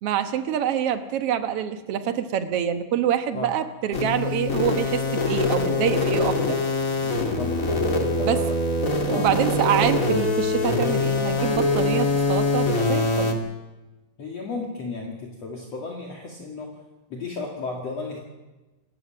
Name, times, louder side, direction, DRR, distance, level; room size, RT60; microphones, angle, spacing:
voice 1, 0.0-6.6 8.2-8.4 9.1-13.4, right 9 dB, 60° right, 9 dB, 1.6 m, -26 dB
sound 1, 3.9-13.3, left 2 dB, 25° left, 2.2 m, -23 dB
voice 2, 7.0-8.4 9.1-9.3 14.2-16.8 17.1-18.2, left 3 dB, 50° left, -1 dB, 3.1 m, -34 dB
26.5 x 15.0 x 7.5 m, 1.1 s
omnidirectional pair, 4.0 m